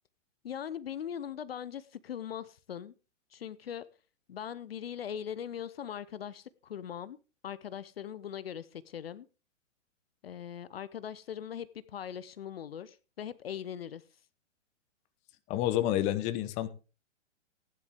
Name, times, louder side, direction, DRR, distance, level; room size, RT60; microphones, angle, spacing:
voice 1, 0.4-2.9 3.3-3.9 4.3-7.2 7.4-9.3 10.2-14.0, left 9 dB, 50° left, 0.8 m, -40 dB
voice 2, 15.5-16.7, left 13 dB, 20° left, 0.8 m, -29 dB
15.0 x 11.0 x 3.6 m
figure-of-eight pair, 115°, 37 cm